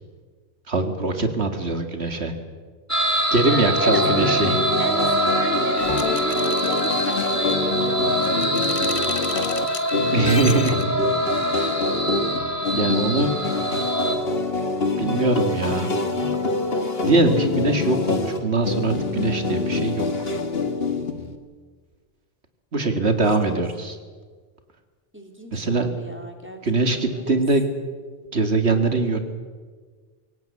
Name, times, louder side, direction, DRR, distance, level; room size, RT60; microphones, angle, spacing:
voice 1, 0.7-2.3 3.0-4.6 10.1-11.0 11.5-11.8 12.7-13.4 15.0-15.9 17.0-20.1 22.7-23.9 25.5-25.9 26.6-27.6 28.3-29.2, right 3 dB, 70° right, 6 dB, 2.3 m, -22 dB
sound 1, 2.9-14.1, right 1 dB, 15° left, 2.7 m, -24 dB
voice 2, 3.4-4.4 4.8-9.3 23.4-23.8 25.1-26.6 26.9-27.3 29.0-29.1, equal, 10° right, 3 dB, 3.2 m, -34 dB
sound 2, 3.9-21.4, left 3 dB, 60° left, 1.8 m, -26 dB
sound 3, 5.8-10.8, left 5 dB, 35° left, 0.7 m, -32 dB
24.0 x 17.0 x 8.4 m, 1.5 s
omnidirectional pair, 1.2 m